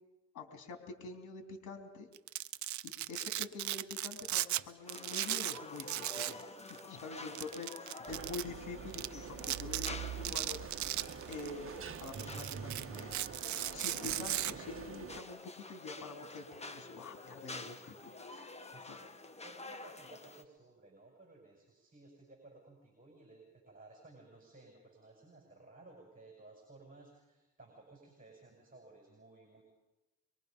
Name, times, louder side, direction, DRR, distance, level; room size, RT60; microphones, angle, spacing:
voice 1, 0.3-2.1 2.8-6.4 6.9-10.6 11.3-13.1 13.7-18.6 18.9-19.1, left 3 dB, 75° left, 4 dB, 3.2 m, -46 dB
Domestic sounds home sounds, 2.1-4.6 4.9-6.4 6.7-6.8 7.4-8.4 8.9-9.1 9.4-9.9 10.3-11.5 11.9-14.5, right 14 dB, 70° right, 0.7 m, -37 dB
sound 1, 4.9-20.4, left 2 dB, 20° left, 1.6 m, -49 dB
sound 2, 8.1-15.2, right 7 dB, 45° right, 1.4 m, -45 dB
voice 2, 18.7-29.6, right 2 dB, 25° right, 0 dB, 7.2 m, -58 dB
24.5 x 23.0 x 5.4 m, 1.0 s
cardioid pair, 90°, 30 cm